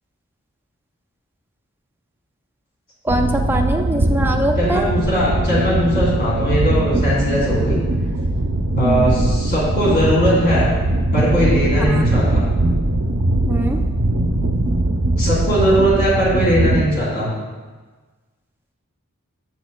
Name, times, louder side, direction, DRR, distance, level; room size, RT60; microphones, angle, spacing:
voice 1, 3.0-4.9 8.8-9.3 11.9-12.1 13.5-13.8, right 1 dB, 10° right, 3 dB, 0.5 m, -22 dB
sound 1, 3.1-16.8, right 2 dB, 70° right, 0.6 m, -20 dB
voice 2, 4.6-7.8 8.7-10.8 11.1-12.4 15.2-17.3, equal, 45° left, -7 dB, 2.4 m, -19 dB
8.3 x 7.6 x 2.2 m, 1.3 s
head